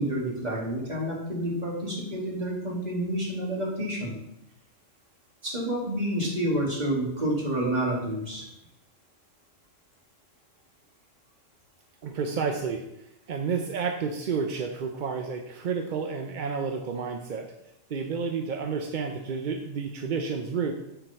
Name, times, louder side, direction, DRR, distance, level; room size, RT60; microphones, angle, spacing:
voice 1, 0.0-4.1 5.4-8.5, right 1 dB, 35° right, -3 dB, 2.2 m, -29 dB
voice 2, 12.0-12.8 13.3-17.5 17.9-20.7, right 5 dB, 50° right, 4 dB, 0.6 m, -30 dB
7.6 x 4.6 x 5.5 m, 0.84 s
omnidirectional pair, 1.3 m